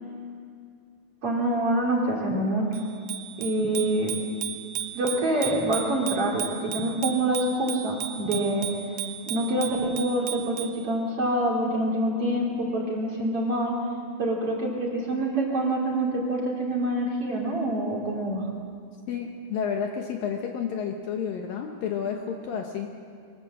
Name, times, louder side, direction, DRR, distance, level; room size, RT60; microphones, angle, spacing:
voice 1, 1.2-2.7 3.4-4.2 4.9-8.7 9.3-13.8 14.2-18.4, right 1 dB, 40° right, -1 dB, 3.0 m, -26 dB
Bicycle bell, 2.7-10.8, right 10 dB, 80° right, 3.2 m, -36 dB
voice 2, 19.1-22.9, left 7 dB, 70° left, 3 dB, 2.4 m, -31 dB
23.0 x 19.5 x 7.7 m, 2.3 s
omnidirectional pair, 5.0 m